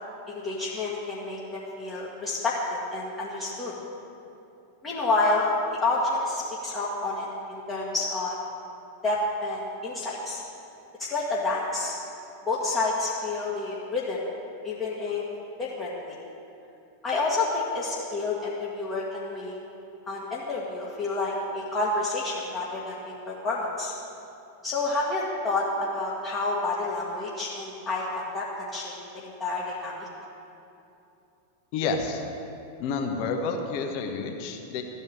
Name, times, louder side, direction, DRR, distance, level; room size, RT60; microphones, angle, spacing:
voice 1, 0.3-3.7 4.8-8.4 9.0-10.4 11.0-12.0 12.5-14.2 14.6-15.2 15.6-16.1 17.0-19.6 20.1-23.9 24.6-30.1, left 2 dB, 25° left, -6 dB, 1.8 m, -29 dB
voice 2, 31.7-32.2 32.8-34.8, left 4 dB, 45° left, 3 dB, 1.2 m, -29 dB
13.5 x 5.5 x 8.9 m, 2.8 s
figure-of-eight pair, 90°, 0 cm